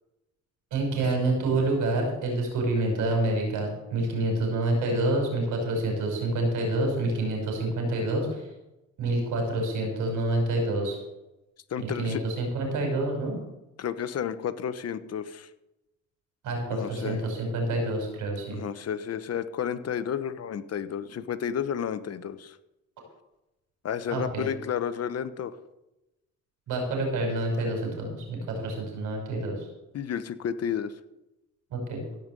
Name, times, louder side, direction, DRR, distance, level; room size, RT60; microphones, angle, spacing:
voice 1, 0.7-8.5 9.0-11.0 11.8-13.4 16.4-18.6 24.1-24.5 26.7-29.7 31.7-32.1, right 2 dB, 85° right, 2 dB, 5.2 m, -27 dB
voice 2, 11.7-12.2 13.8-15.5 16.7-17.2 18.5-22.6 23.8-25.5 29.9-30.9, left 8 dB, 55° left, 13 dB, 1.0 m, -31 dB
16.0 x 5.4 x 7.8 m, 0.96 s
cardioid pair, 90°, 30 cm